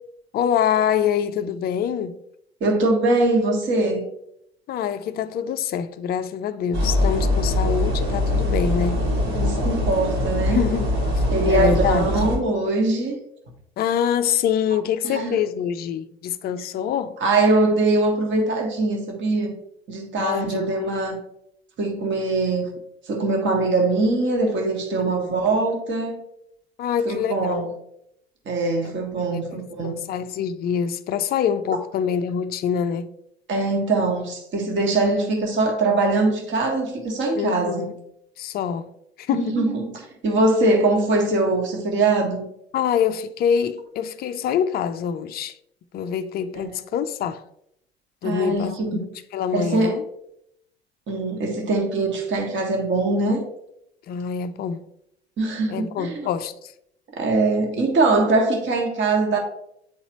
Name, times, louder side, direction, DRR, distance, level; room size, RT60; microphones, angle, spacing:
voice 1, 0.3-2.2 4.7-9.0 10.5-10.9 11.1-12.2 13.8-17.2 20.2-20.6 25.1-25.4 26.8-27.8 28.8-28.9 29.3-33.1 37.4-37.9 38.4-38.9 39.2-39.6 42.7-45.6 45.9-47.4 48.2-49.1 49.3-50.0 54.1-54.8 55.7-56.7, left 8 dB, 30° left, 0.5 m, -25 dB
voice 2, 2.6-4.1 9.3-10.6 11.3-13.2 15.0-15.4 17.2-19.5 19.9-21.2 21.8-22.7 23.1-26.2 27.0-27.7 28.4-29.9 33.5-37.9 39.3-42.4 46.5-46.8 48.2-49.0 49.5-50.0 51.1-53.4 55.4-56.3 57.2-59.4, right 2 dB, 35° right, 1.6 m, -22 dB
sound 1, 6.7-12.4, left 1 dB, 55° right, 2.3 m, -22 dB
9.4 x 4.0 x 3.0 m
figure-of-eight pair, 70°, 32 cm